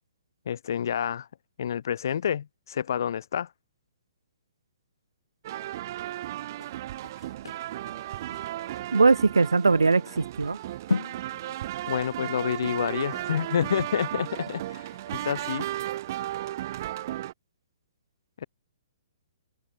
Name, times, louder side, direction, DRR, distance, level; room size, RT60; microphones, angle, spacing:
voice 1, 0.5-1.3 1.6-3.5 11.9-15.7 18.4-18.5, left 8 dB, 65° left, 1.4 m, -29 dB
sound 1, 5.4-17.3, right 14 dB, 50° right, 2.0 m, -35 dB
sound 2, 6.5-15.1 15.5-15.6, left 4 dB, 90° left, 5.1 m, -38 dB
voice 2, 8.9-10.6, right 4 dB, 90° right, 2.6 m, -21 dB
hypercardioid pair, 130°, 2 cm